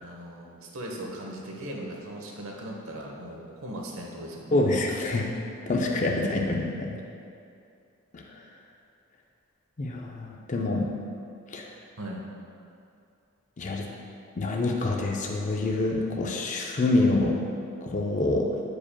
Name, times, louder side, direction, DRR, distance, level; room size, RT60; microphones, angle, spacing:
voice 1, 0.0-4.6 6.5-6.6 12.0-12.2, right 1 dB, 85° right, -1 dB, 0.9 m, -38 dB
voice 2, 4.5-5.3 5.7-7.0 8.1-8.2 9.8-10.9 11.5-11.6 13.6-13.9 14.4-17.3 17.8-18.5, left 2 dB, 35° left, 0 dB, 0.5 m, -26 dB
8.5 x 4.9 x 2.2 m, 2.5 s
head